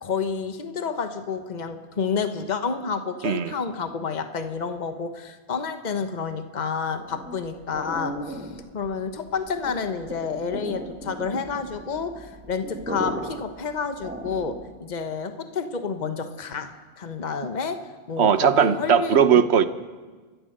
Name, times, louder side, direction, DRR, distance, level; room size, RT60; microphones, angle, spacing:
voice 1, 0.0-8.4 8.7-17.8 18.1-19.4, left 5 dB, 45° left, 8 dB, 1.2 m, -30 dB
voice 2, 3.2-3.5 18.2-19.7, right 8 dB, 80° right, 12 dB, 1.2 m, -18 dB
sound 1, 7.0-14.8, equal, 10° right, 1.9 m, -37 dB
30.0 x 13.0 x 6.6 m, 1.4 s
omnidirectional pair, 1.1 m